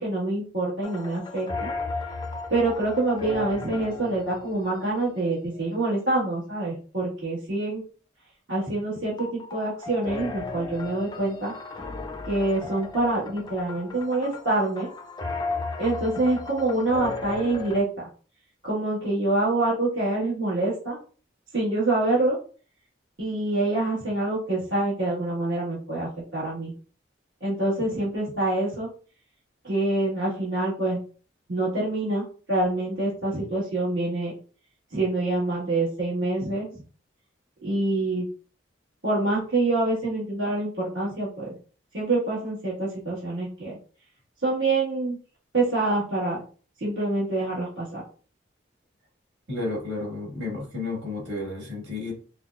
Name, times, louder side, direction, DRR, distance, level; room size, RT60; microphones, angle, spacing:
voice 1, 0.0-1.7 2.5-7.8 8.5-11.5 12.3-14.9 15.8-18.1 18.6-21.0 21.5-22.4 23.2-26.7 27.4-28.9 29.6-31.0 31.5-34.3 34.9-36.8 37.6-38.2 39.0-41.5 41.9-43.8 44.4-45.2 45.5-46.4 46.8-48.0, right 2 dB, 60° right, -10 dB, 1.5 m, -26 dB
sound 1, 0.8-5.8 9.2-17.8, left 3 dB, 20° left, 0.3 m, -36 dB
voice 2, 49.5-52.1, left 2 dB, 75° right, -2 dB, 1.8 m, -32 dB
5.6 x 2.1 x 2.4 m, 0.39 s
head